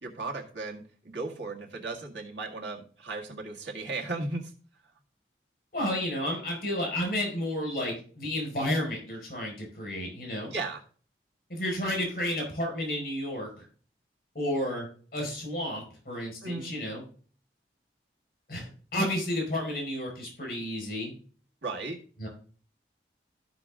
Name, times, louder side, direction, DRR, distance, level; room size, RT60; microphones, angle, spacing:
voice 1, 0.0-4.5 10.5-10.8 16.4-16.7 21.6-22.0, right 3 dB, 90° right, 0 dB, 1.9 m, -36 dB
voice 2, 5.7-10.5 11.5-13.7 14.4-14.9 15.1-17.0 18.5-21.1 22.2-22.3, left 1 dB, 50° left, 0 dB, 5.2 m, -31 dB
13.0 x 6.0 x 3.7 m, 0.43 s
head